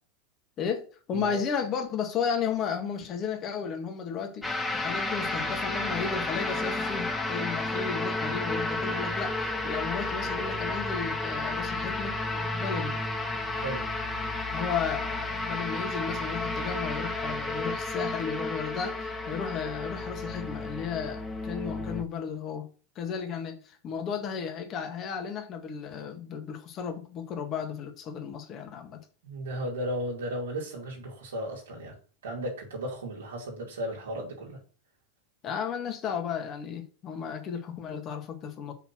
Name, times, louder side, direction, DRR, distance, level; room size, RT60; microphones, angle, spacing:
voice 1, 0.6-13.0 14.5-22.7 23.0-29.0 35.4-38.7, left 6 dB, 40° left, 1.8 m, -34 dB
sound 1, 4.4-22.0, left 2 dB, 10° left, 1.6 m, -32 dB
voice 2, 13.5-13.8 29.2-31.9 32.2-34.6, equal, 90° right, 2.7 m, -35 dB
5.6 x 4.2 x 6.1 m
hypercardioid pair, 105°, 0 cm